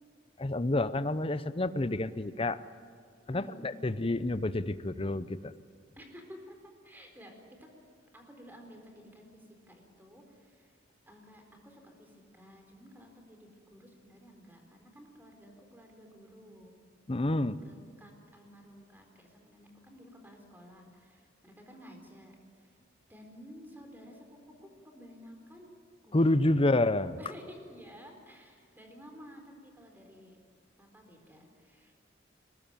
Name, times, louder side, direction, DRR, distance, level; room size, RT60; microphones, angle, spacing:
voice 1, 0.4-2.6 3.3-5.5 17.1-17.6 26.1-27.2, left 2 dB, 30° left, 14 dB, 0.7 m, -28 dB
voice 2, 3.3-3.8 6.0-7.7 8.1-10.8 11.1-16.8 17.3-22.8 23.1-25.8 26.0-26.6 27.2-30.4 30.8-32.0, equal, 10° right, 3 dB, 4.2 m, -53 dB
22.5 x 20.0 x 9.1 m, 2.2 s
head